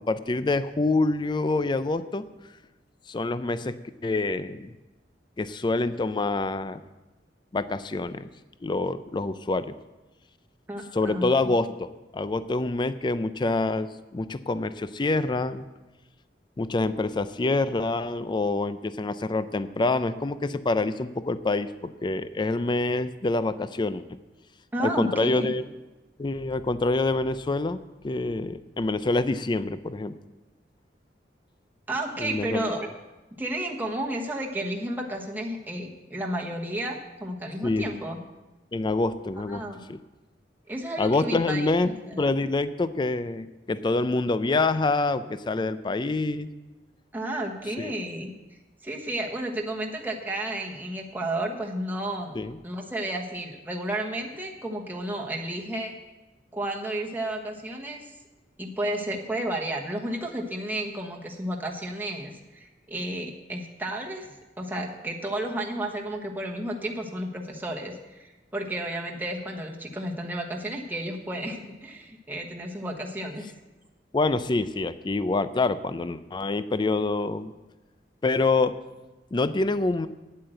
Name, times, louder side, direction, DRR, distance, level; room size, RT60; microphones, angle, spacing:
voice 1, 0.0-2.3 3.1-3.8 4.0-4.7 5.4-6.8 7.5-8.3 8.6-9.8 10.9-15.7 16.6-24.0 24.8-25.6 26.2-27.8 28.0-30.2 32.2-32.8 37.6-37.9 38.7-39.6 39.9-40.0 41.0-41.9 42.2-46.5 47.8-47.9 52.3-52.6 74.1-77.5 78.2-78.7 79.3-80.1, left 3 dB, 25° left, 13 dB, 0.4 m, -26 dB
voice 2, 10.7-11.3 24.7-25.5 31.9-32.9 33.4-38.2 39.5-39.8 40.7-42.3 47.1-48.3 48.8-52.3 52.6-55.9 56.5-58.1 58.6-73.5, right 1 dB, 10° right, 0 dB, 1.2 m, -32 dB
9.5 x 8.4 x 7.8 m, 1.1 s
head